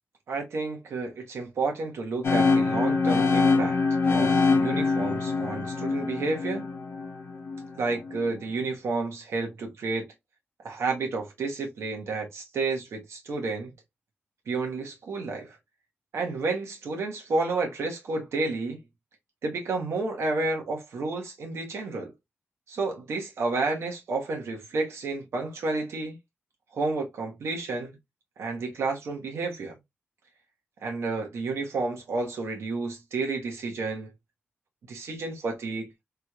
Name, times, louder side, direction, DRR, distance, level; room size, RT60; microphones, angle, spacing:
voice 1, 0.3-3.8 4.1-6.7 7.8-10.1 10.6-13.7 14.5-15.5 16.1-18.8 19.4-22.1 22.7-26.2 26.7-28.0 28.4-29.7 30.8-34.1 34.9-35.9, right 3 dB, 90° right, 1.3 m, -31 dB
sound 1, 2.2-8.2, left 4 dB, 70° left, 0.9 m, -24 dB
3.6 x 3.1 x 2.3 m
wide cardioid pair, 95°, 4 cm